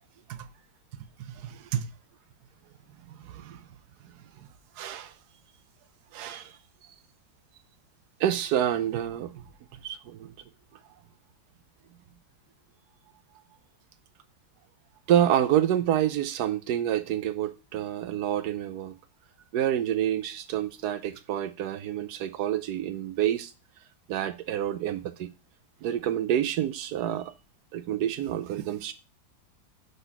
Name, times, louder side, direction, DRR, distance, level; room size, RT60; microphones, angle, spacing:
voice 1, 1.4-1.9 3.1-3.6 4.8-5.1 6.1-6.5 8.2-9.4 9.8-10.3 15.1-19.0 19.5-23.5 24.1-25.3 25.8-27.3 27.7-28.9, right 11 dB, 70° right, 1.1 m, -28 dB
5.5 x 4.0 x 5.8 m
omnidirectional pair, 2.0 m